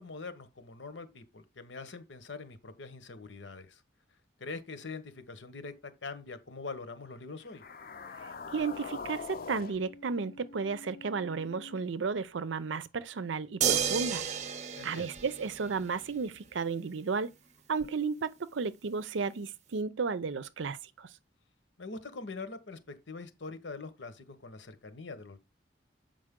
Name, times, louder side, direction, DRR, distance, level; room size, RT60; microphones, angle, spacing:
voice 1, 0.0-3.8 4.4-7.6 14.8-15.1 21.8-25.4, left 3 dB, 85° left, 1.1 m, -43 dB
sound 1, 7.4-11.8, left 4 dB, 50° left, 0.5 m, -44 dB
voice 2, 8.2-14.3 14.8-17.3 17.7-21.1, right 5 dB, 90° right, 0.6 m, -33 dB
sound 2, 13.6-16.1 17.8-17.9, right 8 dB, 40° right, 0.5 m, -31 dB
7.5 x 5.3 x 3.7 m
head